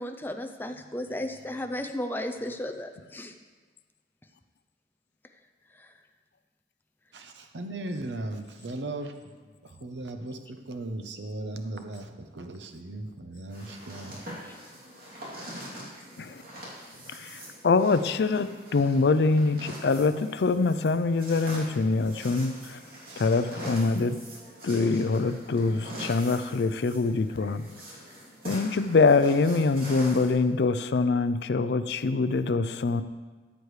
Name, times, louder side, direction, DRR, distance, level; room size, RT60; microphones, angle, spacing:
voice 1, 0.0-3.3, left 1 dB, 10° left, 6 dB, 0.5 m, -34 dB
voice 2, 7.1-9.2 9.6-14.2 23.1-23.2, right 2 dB, 80° right, 6 dB, 0.8 m, -37 dB
sound 1, 13.5-30.3, equal, 55° right, 2.9 m, -43 dB
voice 3, 17.1-22.8 23.2-24.2 24.6-27.6 28.5-33.0, left 3 dB, 65° left, 12 dB, 0.4 m, -24 dB
14.0 x 8.1 x 3.2 m, 1.4 s
head